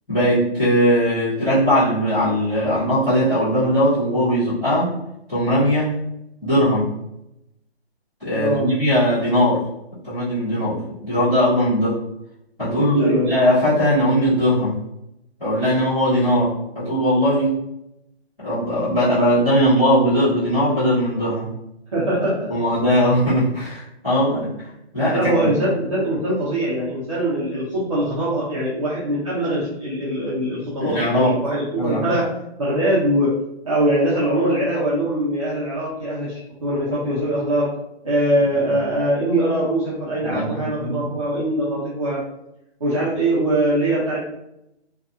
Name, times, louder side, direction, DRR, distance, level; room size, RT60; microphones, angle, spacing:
voice 1, 0.1-4.9 5.3-5.9 6.4-6.9 8.2-9.6 10.0-12.0 12.6-14.8 15.4-17.6 18.4-21.5 22.5-25.5 30.8-31.4 31.8-32.1 38.7-38.8 40.2-40.9, equal, 5° left, -18 dB, 0.7 m, -19 dB
voice 2, 8.3-8.7 12.8-13.3 14.3-14.4 21.9-22.5 25.1-32.2 32.6-33.3 33.6-37.7 38.0-42.2 42.8-44.2, right 1 dB, 30° right, -10 dB, 0.6 m, -22 dB
2.5 x 2.4 x 2.4 m, 0.85 s
hypercardioid pair, 170°, 33 cm